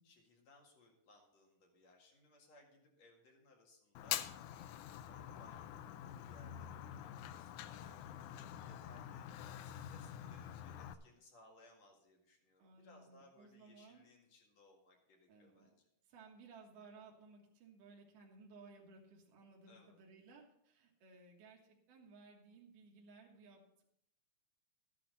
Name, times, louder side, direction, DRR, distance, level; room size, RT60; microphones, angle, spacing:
voice 1, 0.0-9.3 9.6-15.9 19.7-20.0, left 2 dB, 60° left, 1 dB, 3.2 m, -65 dB
Fire, 4.0-10.9, left 11 dB, 80° left, 2.0 m, -46 dB
voice 2, 12.6-14.1 15.3-15.8 16.0-23.8, right 4 dB, 85° right, 0 dB, 3.0 m, -59 dB
13.5 x 10.0 x 4.0 m, 0.75 s
omnidirectional pair, 3.6 m